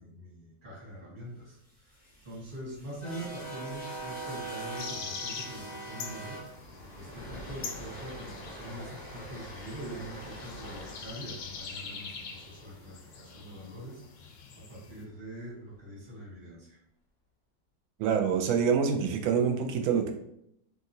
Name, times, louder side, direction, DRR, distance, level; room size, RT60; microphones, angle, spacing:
voice 1, 0.0-1.6 2.2-6.6 6.9-14.0 14.5-16.8, right 1 dB, 30° right, -5 dB, 1.2 m, -43 dB
sound 1, 1.8-13.9, right 2 dB, 15° right, 0.4 m, -44 dB
sound 2, 4.8-15.0, left 5 dB, 85° left, 1.3 m, -44 dB
voice 2, 18.0-20.1, right 6 dB, 85° right, 5 dB, 1.3 m, -26 dB
3.1 x 2.8 x 2.7 m, 0.76 s
omnidirectional pair, 2.1 m